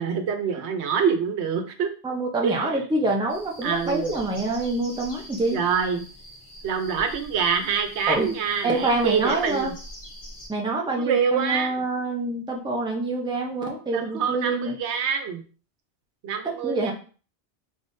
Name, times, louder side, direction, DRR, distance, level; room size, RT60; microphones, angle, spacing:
voice 1, 0.0-1.9 2.4-2.8 3.6-4.2 5.5-6.0 6.6-9.7 10.9-11.7 13.9-15.4 16.2-16.9, right 6 dB, 85° right, 7 dB, 1.0 m, -26 dB
voice 2, 2.0-5.6 8.1-8.3 8.6-9.7 10.5-14.7 16.6-16.9, right 2 dB, 5° right, 0 dB, 0.5 m, -26 dB
sound 1, 3.3-10.5, equal, 50° left, 1.3 m, -44 dB
3.9 x 3.6 x 2.6 m, 0.39 s
omnidirectional pair, 1.1 m